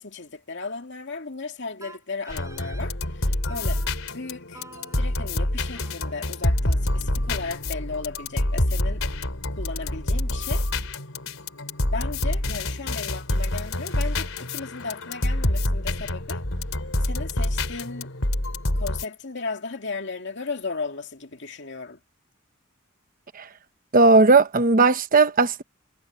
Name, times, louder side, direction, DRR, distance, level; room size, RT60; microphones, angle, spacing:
voice 1, 0.0-4.6 5.0-9.0 9.5-10.7 11.9-16.5 17.0-18.1 18.7-22.0, left 4 dB, 60° left, 2.4 m, -35 dB
Wind instrument woodwind instrument, 1.8-2.9 3.5-3.9 4.5-7.5, right 2 dB, 15° right, 4.6 m, -49 dB
sound 1, 2.3-19.0, left 1 dB, 90° left, 3.4 m, -27 dB
voice 2, 23.9-25.6, right 3 dB, 45° right, 1.0 m, -16 dB
head